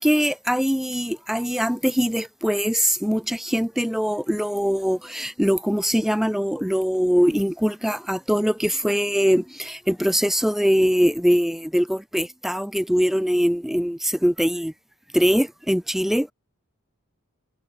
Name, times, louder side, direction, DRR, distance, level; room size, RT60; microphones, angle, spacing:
voice 1, 0.0-14.7 15.1-16.3, equal, ahead, 0.8 m, -22 dB
head